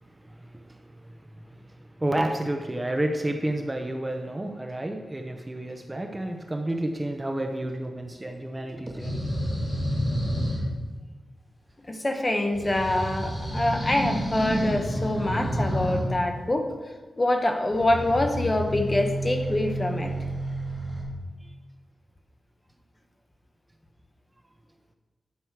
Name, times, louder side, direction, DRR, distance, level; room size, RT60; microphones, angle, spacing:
voice 1, 0.2-9.3, right 1 dB, 15° right, 4 dB, 0.6 m, -31 dB
sound 1, 9.0-10.6 12.5-16.0 17.7-21.0, equal, 40° left, 3.3 m, -29 dB
voice 2, 11.9-16.7 17.2-20.1, left 1 dB, 20° left, 5 dB, 0.8 m, -25 dB
11.5 x 6.1 x 4.6 m, 1.3 s
wide cardioid pair, 160°, 0 cm